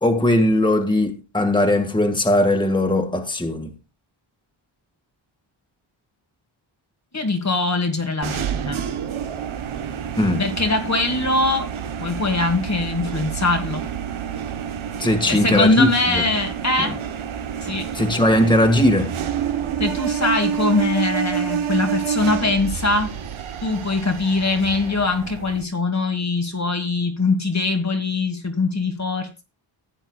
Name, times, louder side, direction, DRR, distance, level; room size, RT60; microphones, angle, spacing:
voice 1, 0.0-3.7 10.2-10.4 15.0-16.2 16.8-16.9 17.9-19.1, left 1 dB, 10° left, 1.7 m, -19 dB
voice 2, 7.1-8.8 10.4-11.7 12.0-13.8 15.3-17.0 17.6-17.9 19.8-23.1 23.6-29.4, left 3 dB, 35° left, 1.7 m, -22 dB
sound 1, 8.2-25.6, right 8 dB, 75° right, 1.1 m, -28 dB
15.5 x 8.9 x 2.3 m
wide cardioid pair, 125°, 49 cm